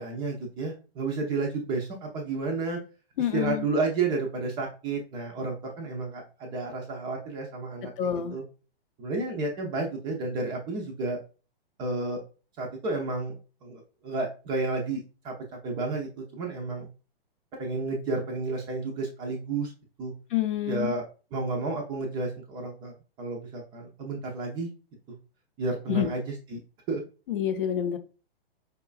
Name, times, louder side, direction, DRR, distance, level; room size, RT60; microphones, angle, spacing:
voice 1, 0.0-2.8 3.3-7.9 8.3-8.4 9.0-11.2 11.8-12.2 12.6-13.4 13.6-15.3 15.6-16.9 17.6-19.7 20.0-20.1 20.7-21.0 21.3-22.9 23.2-24.7 25.6-26.2 26.5-26.6 26.9-27.0, right 3 dB, 15° right, 1 dB, 0.4 m, -31 dB
voice 2, 3.2-3.7 8.0-8.4 20.3-20.9 25.9-26.1 27.3-28.0, left 10 dB, 60° left, 8 dB, 0.6 m, -27 dB
4.7 x 2.2 x 2.3 m, 0.35 s
hypercardioid pair, 120°, 31 cm